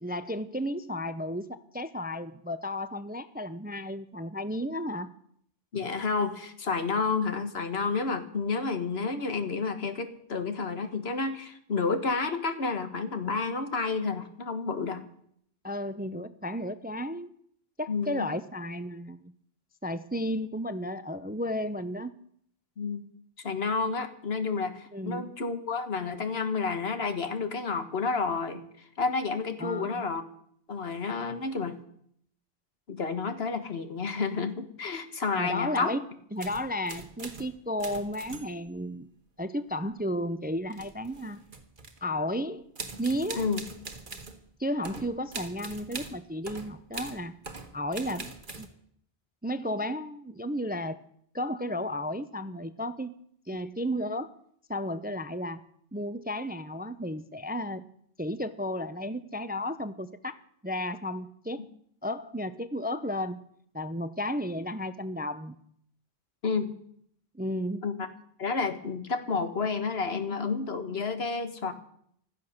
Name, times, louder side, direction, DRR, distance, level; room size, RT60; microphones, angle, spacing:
voice 1, 0.0-5.1 15.6-17.3 17.8-19.2 19.8-22.1 24.9-25.4 29.6-30.1 35.4-36.0 36.3-39.1 39.4-41.4 42.0-42.7 43.0-43.5 44.6-47.3 47.7-48.7 49.4-51.0 51.3-53.1 53.5-54.3 54.7-55.6 55.9-57.8 58.2-60.4 60.6-61.7 62.0-63.4 63.7-65.6 67.3-67.8, equal, 10° right, 13 dB, 0.5 m, -33 dB
voice 2, 5.7-15.0 17.9-18.3 22.8-23.0 23.4-30.2 30.7-31.8 32.9-35.9 43.4-43.6 66.4-66.7 67.8-68.1 68.4-71.7, left 4 dB, 80° left, 9 dB, 1.7 m, -30 dB
sound 1, 36.4-37.5 37.8-38.8 40.7-42.0 42.8-44.4 44.8-48.7, right 3 dB, 55° right, 1.6 m, -42 dB
15.5 x 12.5 x 6.5 m, 0.68 s
omnidirectional pair, 1.0 m